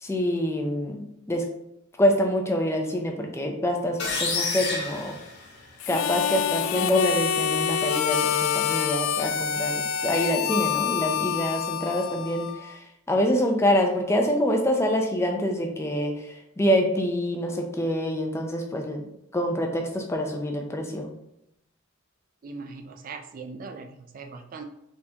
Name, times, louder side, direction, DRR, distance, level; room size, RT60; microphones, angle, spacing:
voice 1, 0.0-1.5 2.0-5.2 5.9-19.0 19.3-21.1, equal, 15° left, 3 dB, 0.5 m, -26 dB
sound 1, 4.0-5.9, left 4 dB, 55° left, 1.0 m, -29 dB
Harmonica, 5.8-12.7, left 8 dB, 85° left, 0.3 m, -26 dB
voice 2, 22.4-24.7, right 4 dB, 45° right, 5 dB, 0.4 m, -40 dB
4.4 x 3.7 x 2.8 m, 0.79 s
head